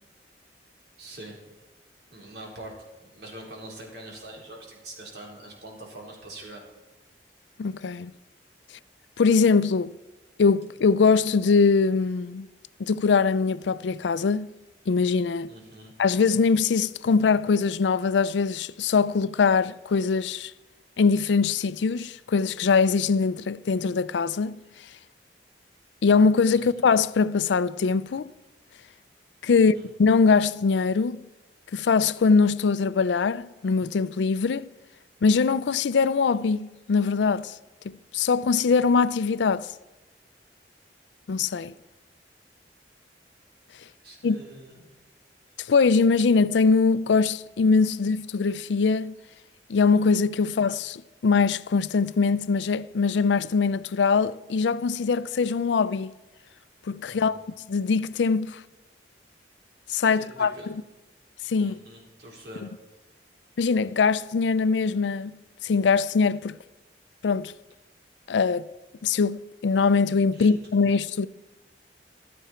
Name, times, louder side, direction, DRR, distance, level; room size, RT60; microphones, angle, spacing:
voice 1, 1.0-1.4 2.1-2.7 3.0-6.6 15.5-15.9 26.5-26.9 29.7-29.9 44.0-44.8 57.1-57.3 60.1-60.7 61.6-62.6 70.3-70.7, right 1 dB, 65° right, 4.2 m, -44 dB
voice 2, 7.6-8.1 9.2-10.0 10.4-12.5 12.8-14.5 14.9-15.5 16.0-20.5 21.0-24.6 26.0-28.3 29.4-31.2 31.7-34.7 35.2-37.5 37.8-39.7 41.3-41.7 44.2-44.4 45.6-49.1 49.7-56.1 56.9-57.4 57.7-58.6 59.9-60.7 61.4-61.8 63.6-65.3 65.6-66.6 67.2-67.5 68.3-68.7 69.0-71.3, left 5 dB, 80° left, 0.4 m, -22 dB
15.0 x 12.5 x 4.4 m
head